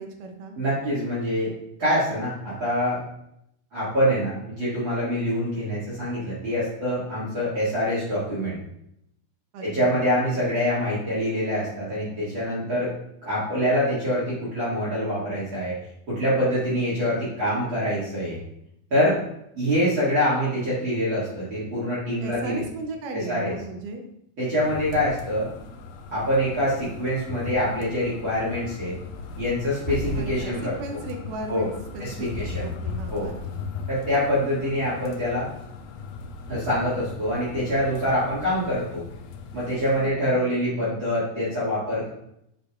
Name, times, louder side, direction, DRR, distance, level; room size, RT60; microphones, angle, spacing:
voice 1, 0.0-0.6 9.5-10.0 22.2-24.0 30.2-33.6 40.0-40.5, right 3 dB, 75° right, 4 dB, 2.1 m, -37 dB
voice 2, 0.6-1.5 1.8-3.0 3.7-8.6 9.6-12.9 13.2-15.8 16.1-18.4 18.9-19.2 19.6-22.6 23.1-23.5 24.4-25.5 26.1-29.0 29.4-30.8 31.5-31.7 32.0-32.7 33.1-33.3 33.9-35.5 36.5-39.0 39.5-42.1, equal, 40° right, -10 dB, 2.4 m, -25 dB
sound 1, 24.6-40.1, left 4 dB, 90° left, 2.4 m, -37 dB
8.0 x 5.3 x 2.4 m, 0.77 s
omnidirectional pair, 4.2 m